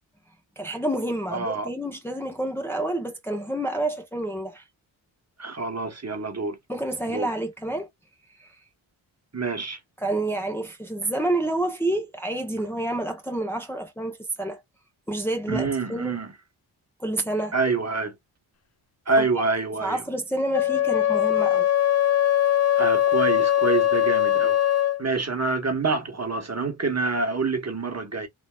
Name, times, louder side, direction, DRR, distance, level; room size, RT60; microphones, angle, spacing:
voice 1, 0.6-4.6 6.7-7.9 8.4-8.5 10.0-14.6 15.1-16.2 17.0-17.6 19.2-19.3 19.8-21.7, right 1 dB, 5° left, 1.0 m, -28 dB
voice 2, 1.3-1.7 5.4-6.6 7.1-7.3 9.3-9.8 15.5-16.3 17.5-18.1 19.1-20.0 22.8-24.6 25.0-28.3, right 3 dB, 30° right, 1.4 m, -26 dB
Wind instrument woodwind instrument, 20.5-25.0, left 12 dB, 30° left, 0.5 m, -21 dB
3.5 x 2.6 x 2.4 m
supercardioid pair, 40°, 50 cm